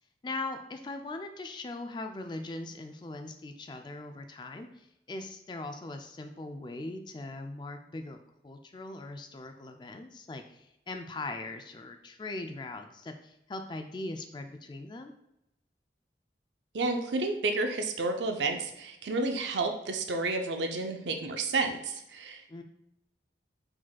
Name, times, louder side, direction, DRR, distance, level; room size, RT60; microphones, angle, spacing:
voice 1, 0.2-8.2 8.4-15.1 22.5-22.6, left 2 dB, 25° left, 6 dB, 0.3 m, -40 dB
voice 2, 16.7-22.4, right 3 dB, 85° right, 5 dB, 0.6 m, -31 dB
4.8 x 4.0 x 2.2 m, 0.84 s
head